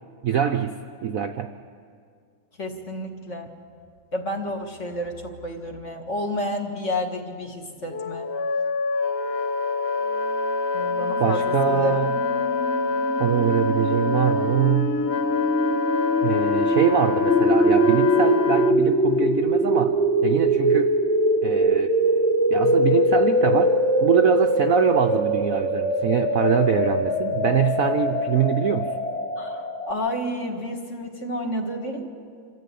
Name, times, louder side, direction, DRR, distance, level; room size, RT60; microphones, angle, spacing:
voice 1, 0.2-0.8 1.0-1.5 11.2-12.2 13.2-15.0 16.2-20.9 21.4-21.9 22.5-23.7 24.0-29.0, right 9 dB, 65° right, 7 dB, 0.9 m, -23 dB
voice 2, 2.6-3.5 4.1-8.3 10.7-12.0 29.4-32.1, left 1 dB, 40° left, 2 dB, 2.0 m, -30 dB
Wind instrument woodwind instrument, 7.9-18.8, left 3 dB, 65° left, 0.6 m, -26 dB
sound 1, 10.7-29.9, equal, 10° left, 0.7 m, -23 dB
26.5 x 14.0 x 8.3 m, 2.3 s
omnidirectional pair, 2.0 m